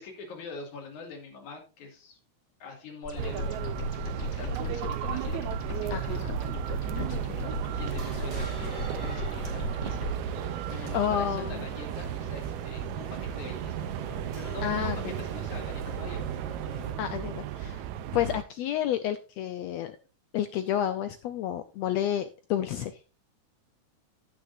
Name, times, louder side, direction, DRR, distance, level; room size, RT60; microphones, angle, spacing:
voice 1, 0.0-2.2 2.6-3.7 4.1-14.0 14.4-16.4, left 4 dB, 65° left, 3 dB, 3.6 m, -44 dB
sound 1, 3.0-10.2, left 1 dB, 25° left, 1.8 m, -35 dB
sound 2, 3.2-18.4, right 10 dB, 75° right, 1.8 m, -35 dB
voice 2, 5.9-6.4 7.0-7.5 10.7-11.6 14.6-15.0 17.0-17.8 18.1-20.0 20.3-22.9, left 10 dB, 85° left, 10 dB, 1.5 m, -30 dB
sound 3, 6.8-16.9, right 3 dB, 35° right, 2.5 m, -43 dB
16.0 x 6.1 x 2.6 m, 0.33 s
omnidirectional pair, 3.7 m